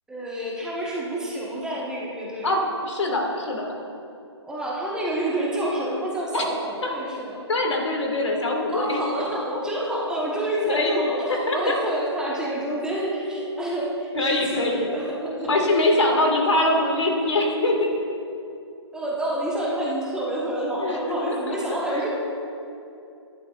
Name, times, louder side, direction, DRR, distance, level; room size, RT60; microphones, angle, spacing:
voice 1, 0.1-2.5 4.4-7.4 8.7-16.2 18.9-22.1, right 1 dB, 5° right, -5 dB, 1.2 m, -28 dB
voice 2, 2.8-3.7 6.3-6.4 6.8-6.9 7.5-9.0 10.7-11.0 11.3-11.7 14.1-14.9 15.5-18.1 20.8-21.0 21.3-21.8, left 2 dB, 75° left, 1 dB, 2.1 m, -23 dB
13.0 x 11.0 x 2.5 m, 2.7 s
figure-of-eight pair, 140°, 15 cm